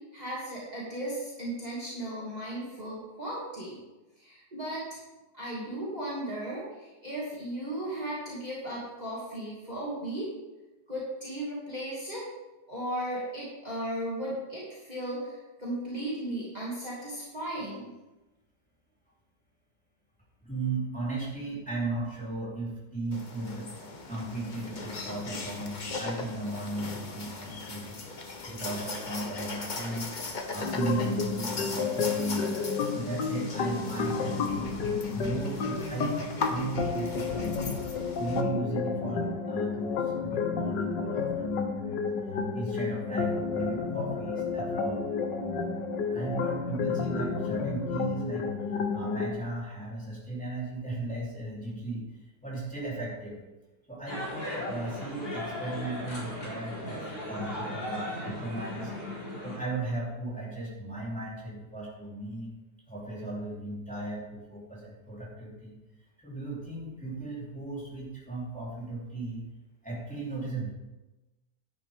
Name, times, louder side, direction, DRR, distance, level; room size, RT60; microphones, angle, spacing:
voice 1, 0.1-3.8 4.2-5.0 5.3-10.3 10.9-12.2 12.7-17.9, right 1 dB, 25° right, -7 dB, 2.8 m, -36 dB
voice 2, 20.4-23.7 24.1-28.0 28.4-30.2 30.5-32.5 32.9-37.8 38.2-42.1 42.5-45.0 46.1-48.5 48.9-52.0 52.4-53.4 53.9-58.9 59.4-62.5 62.9-65.8 66.2-69.4 69.8-70.7, right 2 dB, 5° left, -6 dB, 3.6 m, -36 dB
spider monkey chatter, 23.1-38.4, left 3 dB, 30° left, 1.0 m, -39 dB
sound 1, 30.6-49.3, left 5 dB, 80° left, 1.9 m, -31 dB
sound 2, 54.1-59.6, left 1 dB, 60° left, 4.9 m, -37 dB
11.5 x 10.5 x 3.7 m, 1.1 s
omnidirectional pair, 1.9 m